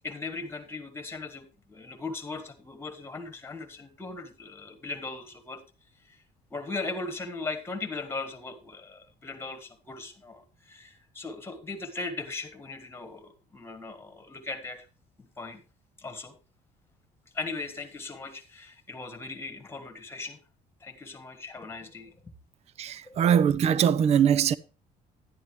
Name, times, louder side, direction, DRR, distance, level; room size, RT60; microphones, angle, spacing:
voice 1, 0.0-5.6 6.0-6.2 6.5-14.9 15.2-15.6 16.0-16.3 17.3-20.4 20.8-22.2 23.0-23.2, left 3 dB, 15° left, 1.7 m, -38 dB
voice 2, 22.8-24.5, right 8 dB, 40° right, 0.5 m, -22 dB
10.5 x 10.0 x 3.2 m
cardioid pair, 140°, 16 cm